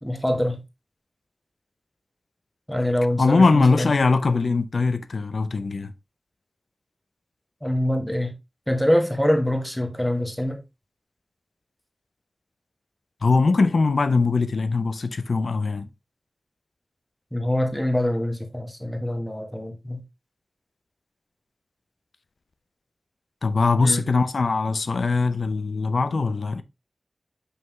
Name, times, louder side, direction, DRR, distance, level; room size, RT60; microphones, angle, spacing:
voice 1, 0.0-0.6 2.7-3.9 7.6-8.3 8.7-10.6 17.3-20.0 23.8-24.1, left 1 dB, 5° left, 1.4 m, -24 dB
voice 2, 3.2-5.9 13.2-15.9 23.4-26.6, left 4 dB, 85° left, 0.5 m, -21 dB
5.7 x 5.4 x 3.1 m
wide cardioid pair, 80°, 0 cm